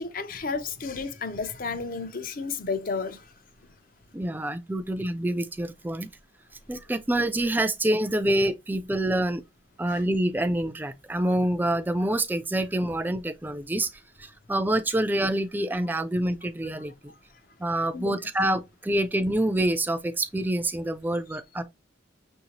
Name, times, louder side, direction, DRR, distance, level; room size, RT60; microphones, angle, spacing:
voice 1, 0.0-3.2 9.9-10.0 17.9-18.3, left 4 dB, 45° left, 0.5 m, -32 dB
voice 2, 4.1-6.1 6.7-9.4 9.8-13.9 14.2-17.1 17.6-21.6, right 1 dB, 10° right, 0.3 m, -26 dB
6.4 x 2.7 x 2.9 m
head